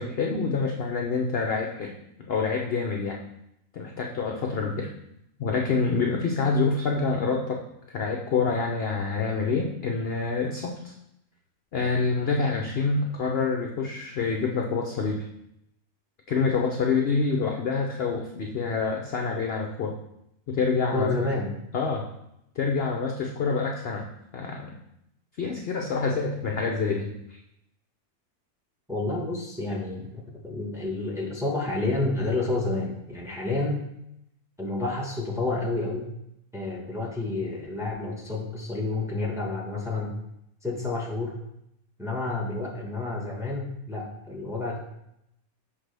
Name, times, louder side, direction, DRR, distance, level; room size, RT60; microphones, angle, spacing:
voice 1, 0.0-3.2 3.7-4.9 5.4-7.6 7.9-10.9 11.7-15.2 16.3-20.0 20.5-21.1 21.7-22.1 22.6-24.1 24.3-24.8 25.4-27.4, left 4 dB, 55° left, 1 dB, 0.7 m, -27 dB
voice 2, 20.9-21.5 28.9-33.8 34.6-36.1 36.5-40.1 40.6-41.4 42.0-44.8, left 2 dB, ahead, -1 dB, 0.9 m, -29 dB
6.1 x 5.8 x 3.3 m, 0.81 s
omnidirectional pair, 1.6 m